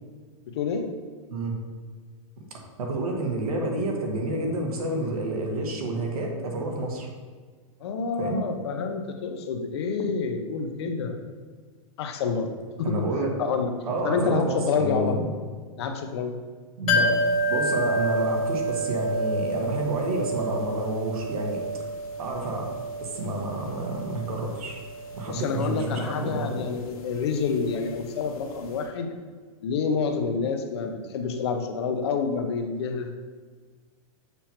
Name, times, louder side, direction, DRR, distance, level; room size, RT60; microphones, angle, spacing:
voice 1, 2.4-7.1 8.2-8.4 12.8-13.3 13.8-15.3 16.8-17.1 17.5-21.6 22.2-22.7 23.0-24.8 25.1-26.6, right 2 dB, 80° right, 1 dB, 1.5 m, -29 dB
voice 2, 7.8-11.2 12.0-12.5 12.8-13.0 13.4-13.7 14.0-15.2 15.8-16.3 25.3-29.1 29.6-33.1, left 5 dB, 45° left, 5 dB, 0.7 m, -28 dB
sound 1, 16.9-28.5 28.7-28.8, right 1 dB, 75° left, 1.2 m, -30 dB
6.8 x 2.9 x 5.8 m, 1.5 s
supercardioid pair, 175°, 19 cm